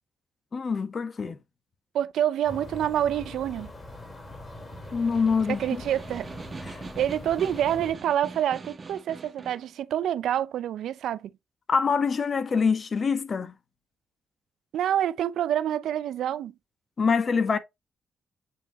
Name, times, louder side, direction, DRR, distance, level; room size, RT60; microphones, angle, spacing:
voice 1, 0.5-1.4 4.9-5.8 6.6-6.8 11.7-13.5 17.0-17.6, left 5 dB, 50° left, 1.4 m, -25 dB
voice 2, 1.9-3.7 5.5-6.3 7.0-11.3 14.7-16.5, right 10 dB, 75° right, 0.4 m, -27 dB
sound 1, 2.4-7.9, left 1 dB, 30° left, 4.3 m, -42 dB
Snare drum, 4.7-9.7, right 4 dB, 40° right, 1.2 m, -43 dB
8.8 x 4.5 x 3.0 m
supercardioid pair, 55°, 0 cm